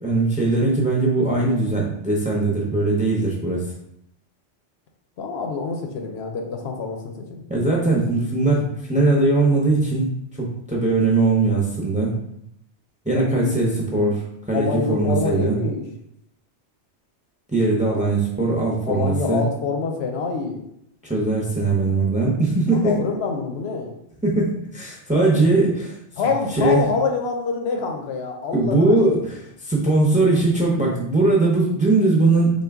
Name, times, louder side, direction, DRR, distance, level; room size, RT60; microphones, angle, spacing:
voice 1, 0.0-3.6 7.5-10.1 10.4-12.2 13.1-15.6 17.5-19.5 21.0-22.9 24.2-25.9 26.5-26.8 28.5-32.5, right 2 dB, 10° right, -2 dB, 0.4 m, -20 dB
voice 2, 5.2-7.4 13.1-14.1 14.5-15.8 18.9-20.6 22.7-23.9 26.2-29.0, left 4 dB, 70° left, 3 dB, 0.8 m, -26 dB
3.8 x 2.2 x 3.4 m, 0.76 s
omnidirectional pair, 1.2 m